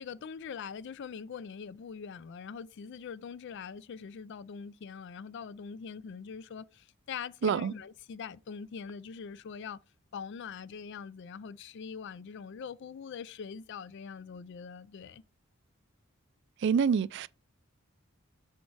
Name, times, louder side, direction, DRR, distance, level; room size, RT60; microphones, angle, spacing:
voice 1, 0.0-9.8 10.1-15.2, left 6 dB, 55° left, 0.4 m, -43 dB
voice 2, 7.4-7.7 16.6-17.3, right 6 dB, 55° right, 0.3 m, -26 dB
7.2 x 4.3 x 4.7 m
head